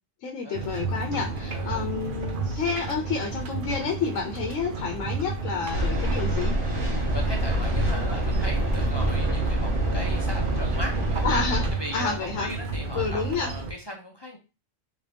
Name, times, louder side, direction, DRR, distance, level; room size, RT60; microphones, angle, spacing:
voice 1, 0.2-6.6 11.2-12.5 12.9-13.6, left 5 dB, 85° left, 1 dB, 1.0 m, -29 dB
sound 1, 0.5-13.7, right 3 dB, 50° right, 0.7 m, -32 dB
voice 2, 1.5-1.9 2.3-2.4 7.1-11.2 11.8-14.4, equal, 35° left, 0 dB, 0.4 m, -38 dB
sound 2, 5.7-11.7, right 1 dB, 70° right, 1.9 m, -26 dB
3.6 x 2.6 x 3.3 m, 0.30 s
omnidirectional pair, 1.3 m